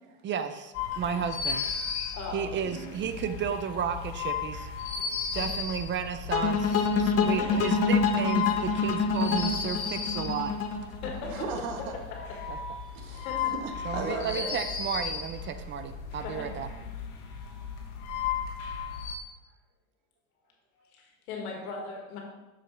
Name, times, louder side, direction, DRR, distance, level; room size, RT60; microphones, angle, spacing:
voice 1, 0.2-1.7 2.3-4.7 5.3-10.5 12.5-12.6 13.8-16.7, right 7 dB, 30° right, 10 dB, 0.5 m, -33 dB
sound 1, 0.7-19.2, left 6 dB, 65° left, 1.6 m, -35 dB
voice 2, 2.1-2.8 5.4-5.5 7.4-7.7 11.0-11.4 12.3-12.4 13.2-13.5 14.1-14.6 16.2-16.5 20.8-22.2, left 4 dB, 85° left, 0 dB, 1.9 m, -38 dB
voice 3, 5.0-5.5 6.6-7.2 9.1-9.2 10.1-10.3 11.3-11.9 12.9-13.3 13.5-14.4, right 4 dB, 80° right, 3 dB, 1.4 m, -38 dB
sound 2, 6.3-11.4, left 5 dB, 35° left, 0.9 m, -26 dB
6.6 x 6.4 x 3.2 m, 1.1 s
supercardioid pair, 105°, 42 cm